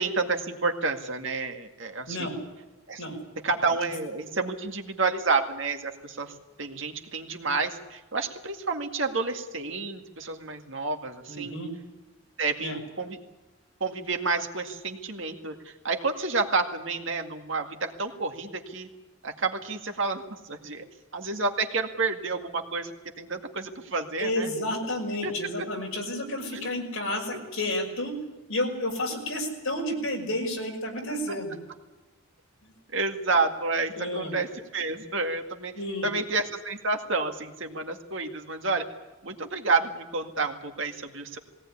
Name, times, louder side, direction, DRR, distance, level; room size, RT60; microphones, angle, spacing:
voice 1, 0.0-2.3 2.9-3.0 3.4-6.3 6.6-11.5 12.4-13.2 13.8-18.9 19.2-20.8 21.1-24.5 25.2-25.3 26.5-26.7 32.9-34.5 34.7-35.7 36.0-38.9 39.2-41.4, right 3 dB, 60° right, 4 dB, 2.0 m, -29 dB
voice 2, 11.3-11.7 12.6-12.8 24.2-28.1 28.5-31.6 32.6-32.7 33.9-34.3 35.7-36.1, left 1 dB, 75° left, 1 dB, 5.8 m, -31 dB
20.5 x 18.0 x 9.9 m, 1.1 s
head